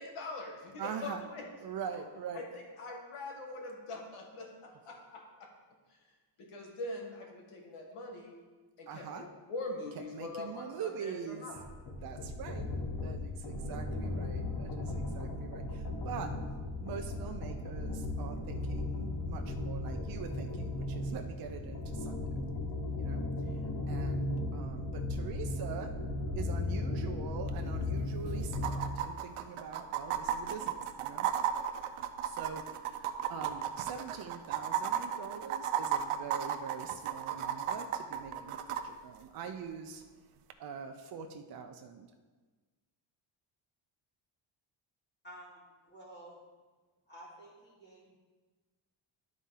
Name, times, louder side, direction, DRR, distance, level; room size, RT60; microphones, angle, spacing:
voice 1, 0.0-1.4 2.3-5.5 6.4-8.3 8.8-11.6, left 2 dB, 85° left, 0 dB, 1.7 m, -43 dB
voice 2, 0.8-1.2 1.6-2.4 8.9-9.3 9.9-11.6 12.0-12.7 13.0-16.3 16.8-22.2 22.9-23.6 23.9-25.9 26.4-31.3 32.2-40.0 40.6-42.1, right 7 dB, 50° right, 4 dB, 0.5 m, -44 dB
sound 1, 11.5-29.0, left 2 dB, 45° left, 1.1 m, -36 dB
sound 2, 27.5-27.6 27.8-27.9 28.5-38.8 40.5-40.6, right 10 dB, 85° right, 0.7 m, -34 dB
voice 3, 45.2-46.4 47.1-48.1, right 1 dB, 20° left, -6 dB, 2.7 m, -52 dB
12.0 x 4.2 x 3.8 m, 1.3 s
cardioid pair, 170°, 50 cm